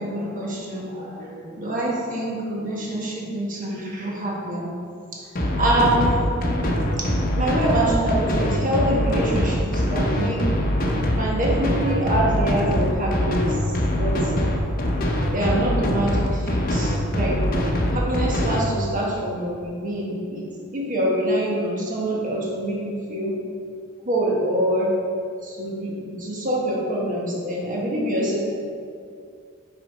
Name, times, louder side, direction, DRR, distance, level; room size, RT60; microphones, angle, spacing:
voice 1, 0.0-4.8 5.1-5.3 5.6-6.3 7.0-7.1 7.4-10.5 11.2-14.3 15.3-17.4 17.9-23.4 24.0-25.0 25.4-28.4, right 1 dB, 40° right, -3 dB, 1.5 m, -25 dB
sound 1, 5.4-18.6, equal, 45° left, 0.9 m, -23 dB
6.0 x 4.8 x 5.3 m, 2.4 s
head